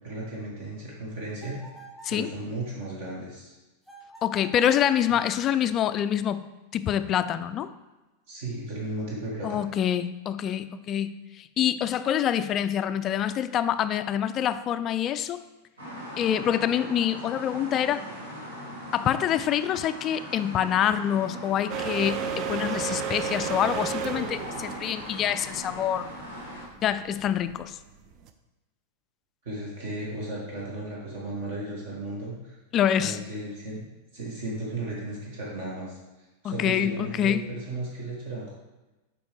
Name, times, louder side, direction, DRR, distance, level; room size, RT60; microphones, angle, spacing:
voice 1, 0.0-1.6 2.1-3.5 5.1-5.2 8.3-9.6 29.4-32.6 33.0-33.8 34.1-35.9 36.4-38.5, right 2 dB, 55° right, -4 dB, 1.8 m, -35 dB
sound 1, 1.4-2.2 3.8-4.8, right 3 dB, 15° right, 1.7 m, -48 dB
voice 2, 4.2-6.5 6.7-7.7 9.4-15.4 16.2-18.0 18.9-26.1 26.8-27.8 32.7-33.2 36.4-37.5, left 10 dB, 30° left, 12 dB, 0.3 m, -26 dB
sound 2, 15.8-26.6, equal, 70° right, 1.8 m, -40 dB
sound 3, 21.7-28.3, right 7 dB, 40° right, 0.5 m, -33 dB
7.9 x 4.7 x 3.3 m, 1.1 s
figure-of-eight pair, 90°, 0 cm